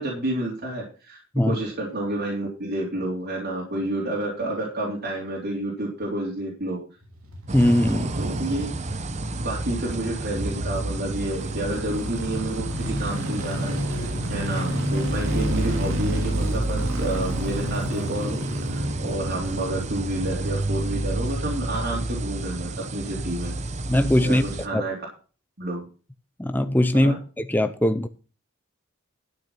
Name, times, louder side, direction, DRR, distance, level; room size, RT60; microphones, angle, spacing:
voice 1, 0.0-6.8 8.2-8.7 9.4-18.4 18.7-23.5 24.2-25.0 25.6-25.8 26.9-27.1, right 1 dB, 50° right, 3.4 m, -30 dB
sound 1, 7.0-22.2 22.5-22.6, left 1 dB, 85° right, 3.0 m, -33 dB
voice 2, 7.5-8.1 23.9-24.4 24.7-24.8 26.4-28.1, left 1 dB, 10° left, 0.6 m, -20 dB
sound 2, 7.5-24.7, right 2 dB, 35° right, 0.8 m, -30 dB
12.0 x 6.8 x 5.9 m
head